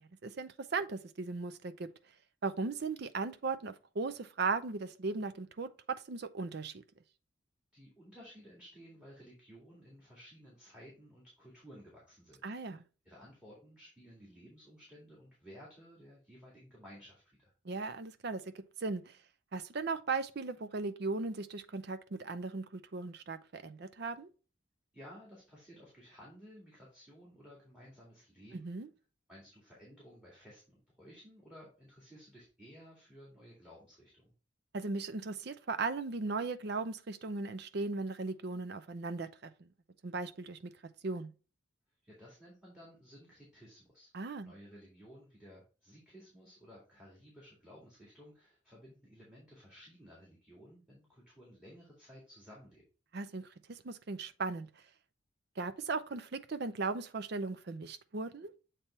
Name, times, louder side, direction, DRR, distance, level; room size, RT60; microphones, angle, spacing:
voice 1, 0.2-1.9 2.4-6.8 12.4-12.8 17.6-19.1 19.5-24.3 28.5-28.9 34.7-39.3 39.6-39.7 40.0-40.6 41.0-41.3 44.1-44.5 53.1-54.7 55.6-58.5, right 3 dB, 50° right, 0.5 m, -37 dB
voice 2, 7.7-12.4 13.0-17.5 24.9-28.7 29.3-34.3 42.0-44.1 44.4-52.8, equal, 5° right, 2.0 m, -55 dB
7.4 x 3.3 x 4.2 m
head